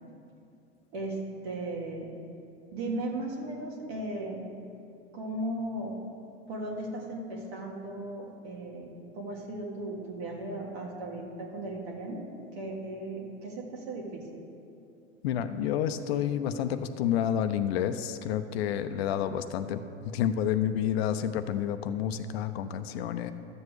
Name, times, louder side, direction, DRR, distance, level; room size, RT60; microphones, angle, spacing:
voice 1, 0.9-2.2 2.7-4.4 5.1-6.0 6.5-14.4, right 1 dB, 65° right, -1 dB, 1.8 m, -36 dB
voice 2, 15.2-19.8 20.1-23.3, left 9 dB, 60° left, 10 dB, 0.6 m, -29 dB
13.5 x 7.6 x 3.2 m, 2.6 s
hypercardioid pair, 90°, 34 cm